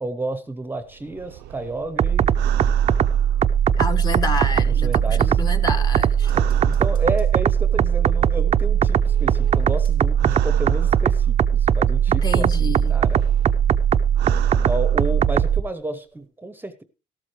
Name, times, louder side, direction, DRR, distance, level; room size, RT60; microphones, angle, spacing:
voice 1, 0.0-2.4 4.7-5.4 5.8-5.9 6.3-13.3 14.6-16.8, right 2 dB, 10° right, 0.8 m, -31 dB
sound 1, 0.8-4.0 4.5-7.5 8.4-11.6 12.1-15.5 15.8-15.9, right 13 dB, 85° right, 0.6 m, -39 dB
sound 2, 2.0-15.6, right 8 dB, 40° right, 0.5 m, -19 dB
voice 2, 3.8-6.3 12.2-13.0, left 3 dB, 25° left, 1.1 m, -29 dB
sound 3, 5.3-10.4 10.8-10.9, left 3 dB, 55° left, 4.5 m, -49 dB
13.5 x 12.5 x 3.1 m
cardioid pair, 110°, 17 cm